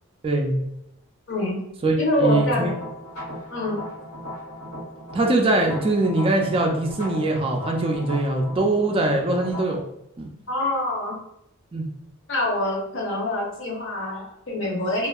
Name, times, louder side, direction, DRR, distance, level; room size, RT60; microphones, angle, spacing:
voice 1, 0.2-0.6 1.8-2.7 5.1-9.8 10.2-10.3 11.7-11.9, right 2 dB, 25° right, 1 dB, 0.3 m, -22 dB
voice 2, 1.3-1.6 2.0-2.7 3.5-3.8 10.5-11.1 12.3-15.1, left 1 dB, 55° left, -2 dB, 0.7 m, -25 dB
sound 1, 2.3-9.6, equal, 80° left, 1.1 m, -37 dB
2.7 x 2.4 x 2.3 m, 0.81 s
head